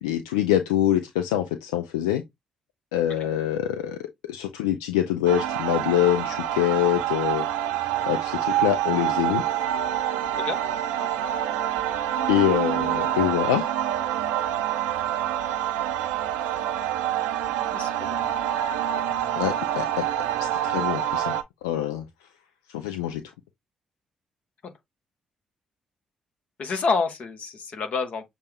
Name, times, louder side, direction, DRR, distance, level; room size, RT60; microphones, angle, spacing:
voice 1, 0.0-2.2 2.9-7.4 8.1-9.4 12.3-13.7 19.4-20.0 20.4-21.3 21.6-22.0 22.7-23.2, left 12 dB, 85° left, 0.4 m, -25 dB
sound 1, 5.3-21.4, right 11 dB, 80° right, 0.5 m, -26 dB
voice 2, 17.7-18.2 18.9-19.1 26.6-28.2, left 4 dB, 55° left, 1.2 m, -28 dB
6.7 x 2.4 x 3.4 m
hypercardioid pair, 45°, 3 cm